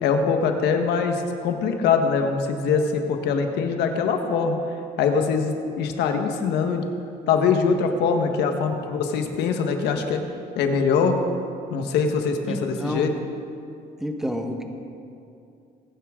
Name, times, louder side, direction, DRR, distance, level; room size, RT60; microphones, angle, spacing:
voice 1, 0.0-4.6 5.0-6.8 7.3-10.2 10.5-11.2 11.7-13.1, left 5 dB, 80° left, 5 dB, 1.4 m, -23 dB
voice 2, 12.5-13.1 14.0-14.6, equal, 5° right, 4 dB, 1.3 m, -29 dB
22.0 x 9.6 x 3.8 m, 2.6 s
cardioid pair, 110°, 17 cm